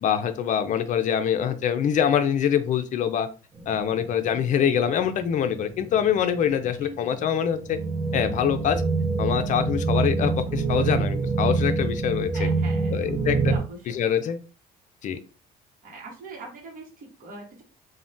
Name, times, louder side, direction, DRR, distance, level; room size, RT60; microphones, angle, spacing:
voice 1, 0.0-3.3 3.7-7.8 8.1-8.8 9.2-12.5 12.9-13.5 13.9-14.4 15.0-15.2, left 8 dB, 50° left, 9 dB, 0.4 m, -24 dB
sound 1, 3.6-13.6, right 4 dB, 20° right, 0.5 m, -27 dB
voice 2, 6.8-7.3 12.3-13.0 13.5-14.0 15.8-17.6, right 3 dB, 55° right, -2 dB, 0.9 m, -42 dB
3.2 x 2.2 x 2.6 m, 0.34 s
cardioid pair, 110°, 17 cm